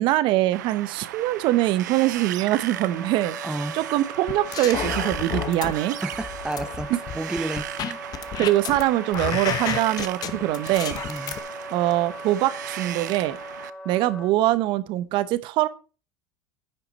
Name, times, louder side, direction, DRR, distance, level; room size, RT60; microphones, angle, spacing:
voice 1, 0.0-3.4 3.7-6.0 8.4-11.0 11.7-13.4 13.8-15.7, right 15 dB, 60° right, 17 dB, 0.9 m, -23 dB
Wind, 0.5-13.7, right 13 dB, 90° right, 0.5 m, -36 dB
Wind instrument woodwind instrument, 2.7-14.3, left 1 dB, 10° left, 1.9 m, -40 dB
voice 2, 3.4-3.8 5.9-8.0 11.1-11.3, right 2 dB, 10° right, 11 dB, 0.9 m, -32 dB
sound 1, 4.3-5.7 6.1-8.8 9.1-11.4, left 9 dB, 45° left, 1.1 m, -30 dB
10.0 x 7.0 x 4.1 m, 0.35 s
hypercardioid pair, 90°, 9 cm